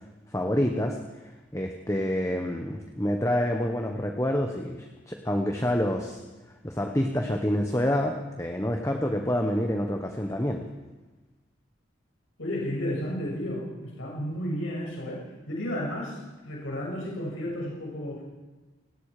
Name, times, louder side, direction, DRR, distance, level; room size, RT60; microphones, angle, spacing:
voice 1, 0.3-1.0 1.5-6.2 6.6-10.6, left 1 dB, 15° left, 3 dB, 1.3 m, -27 dB
voice 2, 12.4-18.2, equal, 90° left, -3 dB, 7.1 m, -33 dB
28.5 x 19.0 x 5.1 m, 1.2 s
head